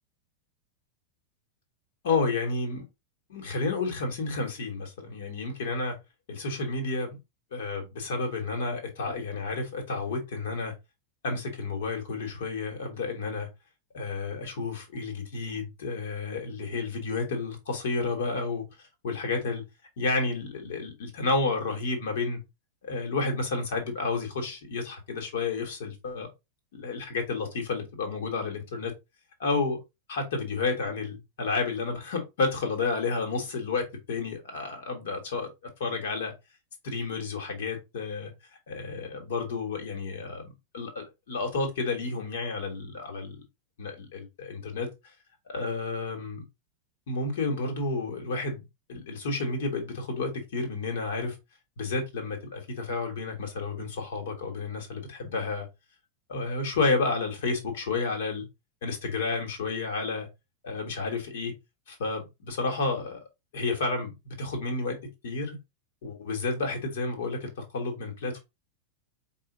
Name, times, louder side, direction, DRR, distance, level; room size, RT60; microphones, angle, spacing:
voice 1, 2.0-2.8 3.3-6.0 6.3-7.2 7.5-10.7 11.2-13.5 13.9-18.6 19.0-19.6 20.0-22.4 22.8-26.3 26.7-28.9 29.4-29.8 30.1-35.5 35.8-36.3 36.8-38.3 38.7-43.4 43.8-44.9 45.5-46.4 47.1-51.4 51.8-55.7 56.3-58.5 58.8-60.3 60.6-61.5 61.9-63.2 63.5-65.0 65.2-65.6 66.0-68.4, left 3 dB, 60° left, 1.5 m, -31 dB
4.8 x 2.5 x 3.7 m
figure-of-eight pair, 90°, 0 cm